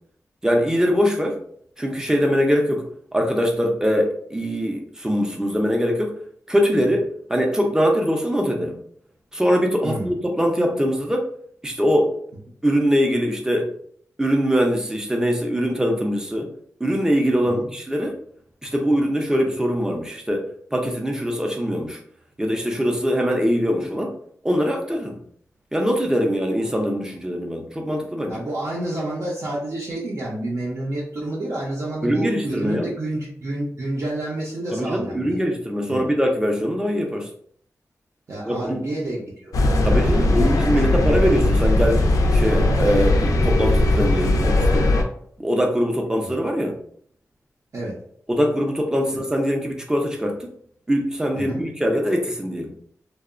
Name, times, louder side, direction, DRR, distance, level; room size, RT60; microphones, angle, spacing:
voice 1, 0.4-1.4 1.8-2.9 3.1-6.2 6.5-8.8 9.3-11.3 11.6-12.2 12.6-13.7 14.2-16.5 16.8-18.2 18.6-22.0 22.4-24.1 24.4-25.2 25.7-28.4 32.0-32.9 34.7-37.3 38.4-38.9 39.8-44.9 45.4-46.8 48.3-50.5 50.9-52.7, equal, 10° right, 2 dB, 0.4 m, -22 dB
voice 2, 9.8-10.1 17.4-17.7 23.8-23.9 28.3-35.4 35.8-36.1 38.3-40.5 46.2-46.3 47.7-48.0 49.1-49.2 51.3-51.6, right 1 dB, 60° right, -5 dB, 0.5 m, -29 dB
sound 1, 39.5-45.0, left 2 dB, 85° left, 0.4 m, -19 dB
2.7 x 2.0 x 2.4 m, 0.63 s
wide cardioid pair, 130°, 6 cm